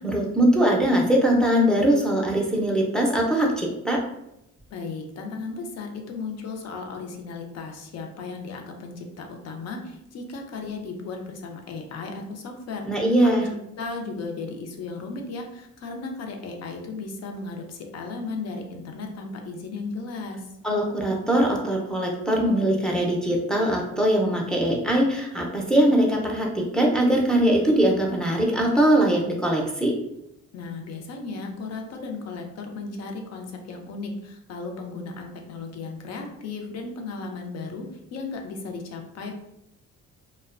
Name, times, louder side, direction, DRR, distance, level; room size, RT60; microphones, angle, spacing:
voice 1, 0.0-4.0 12.9-13.5 20.6-30.0, right 1 dB, ahead, -2 dB, 0.5 m, -21 dB
voice 2, 4.7-13.3 13.7-20.5 30.5-39.3, left 3 dB, 60° left, 3 dB, 0.6 m, -35 dB
2.4 x 2.1 x 2.4 m, 0.85 s
cardioid pair, 90°, 30 cm